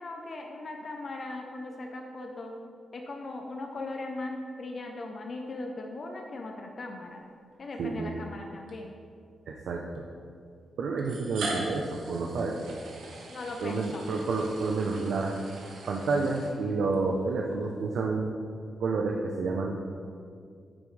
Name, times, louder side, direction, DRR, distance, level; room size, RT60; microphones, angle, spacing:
voice 1, 0.0-2.6 2.9-7.2 7.6-8.9 13.3-14.0, left 2 dB, 40° left, 2 dB, 0.7 m, -38 dB
sound 1, 7.5-7.7 8.7-8.8 9.9-10.0 11.0-17.0, right 2 dB, 90° right, 1.5 m, -41 dB
voice 2, 7.8-8.1 9.5-10.1 10.8-12.6 13.6-15.4 15.9-18.3 18.8-19.8, right 3 dB, 70° right, 0 dB, 0.7 m, -29 dB
9.6 x 9.0 x 3.3 m, 2.2 s
wide cardioid pair, 170°, 0 cm